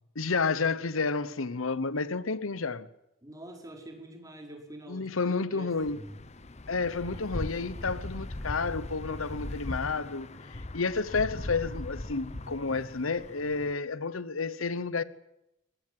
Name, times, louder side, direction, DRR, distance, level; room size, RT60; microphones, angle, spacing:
voice 1, 0.2-2.9 4.9-6.0 6.7-15.0, left 4 dB, 85° left, 1.0 m, -31 dB
voice 2, 3.2-6.1, right 1 dB, 15° right, 4.9 m, -46 dB
sound 1, 5.8-13.7, left 1 dB, 35° left, 1.0 m, -40 dB
23.5 x 20.0 x 7.7 m
head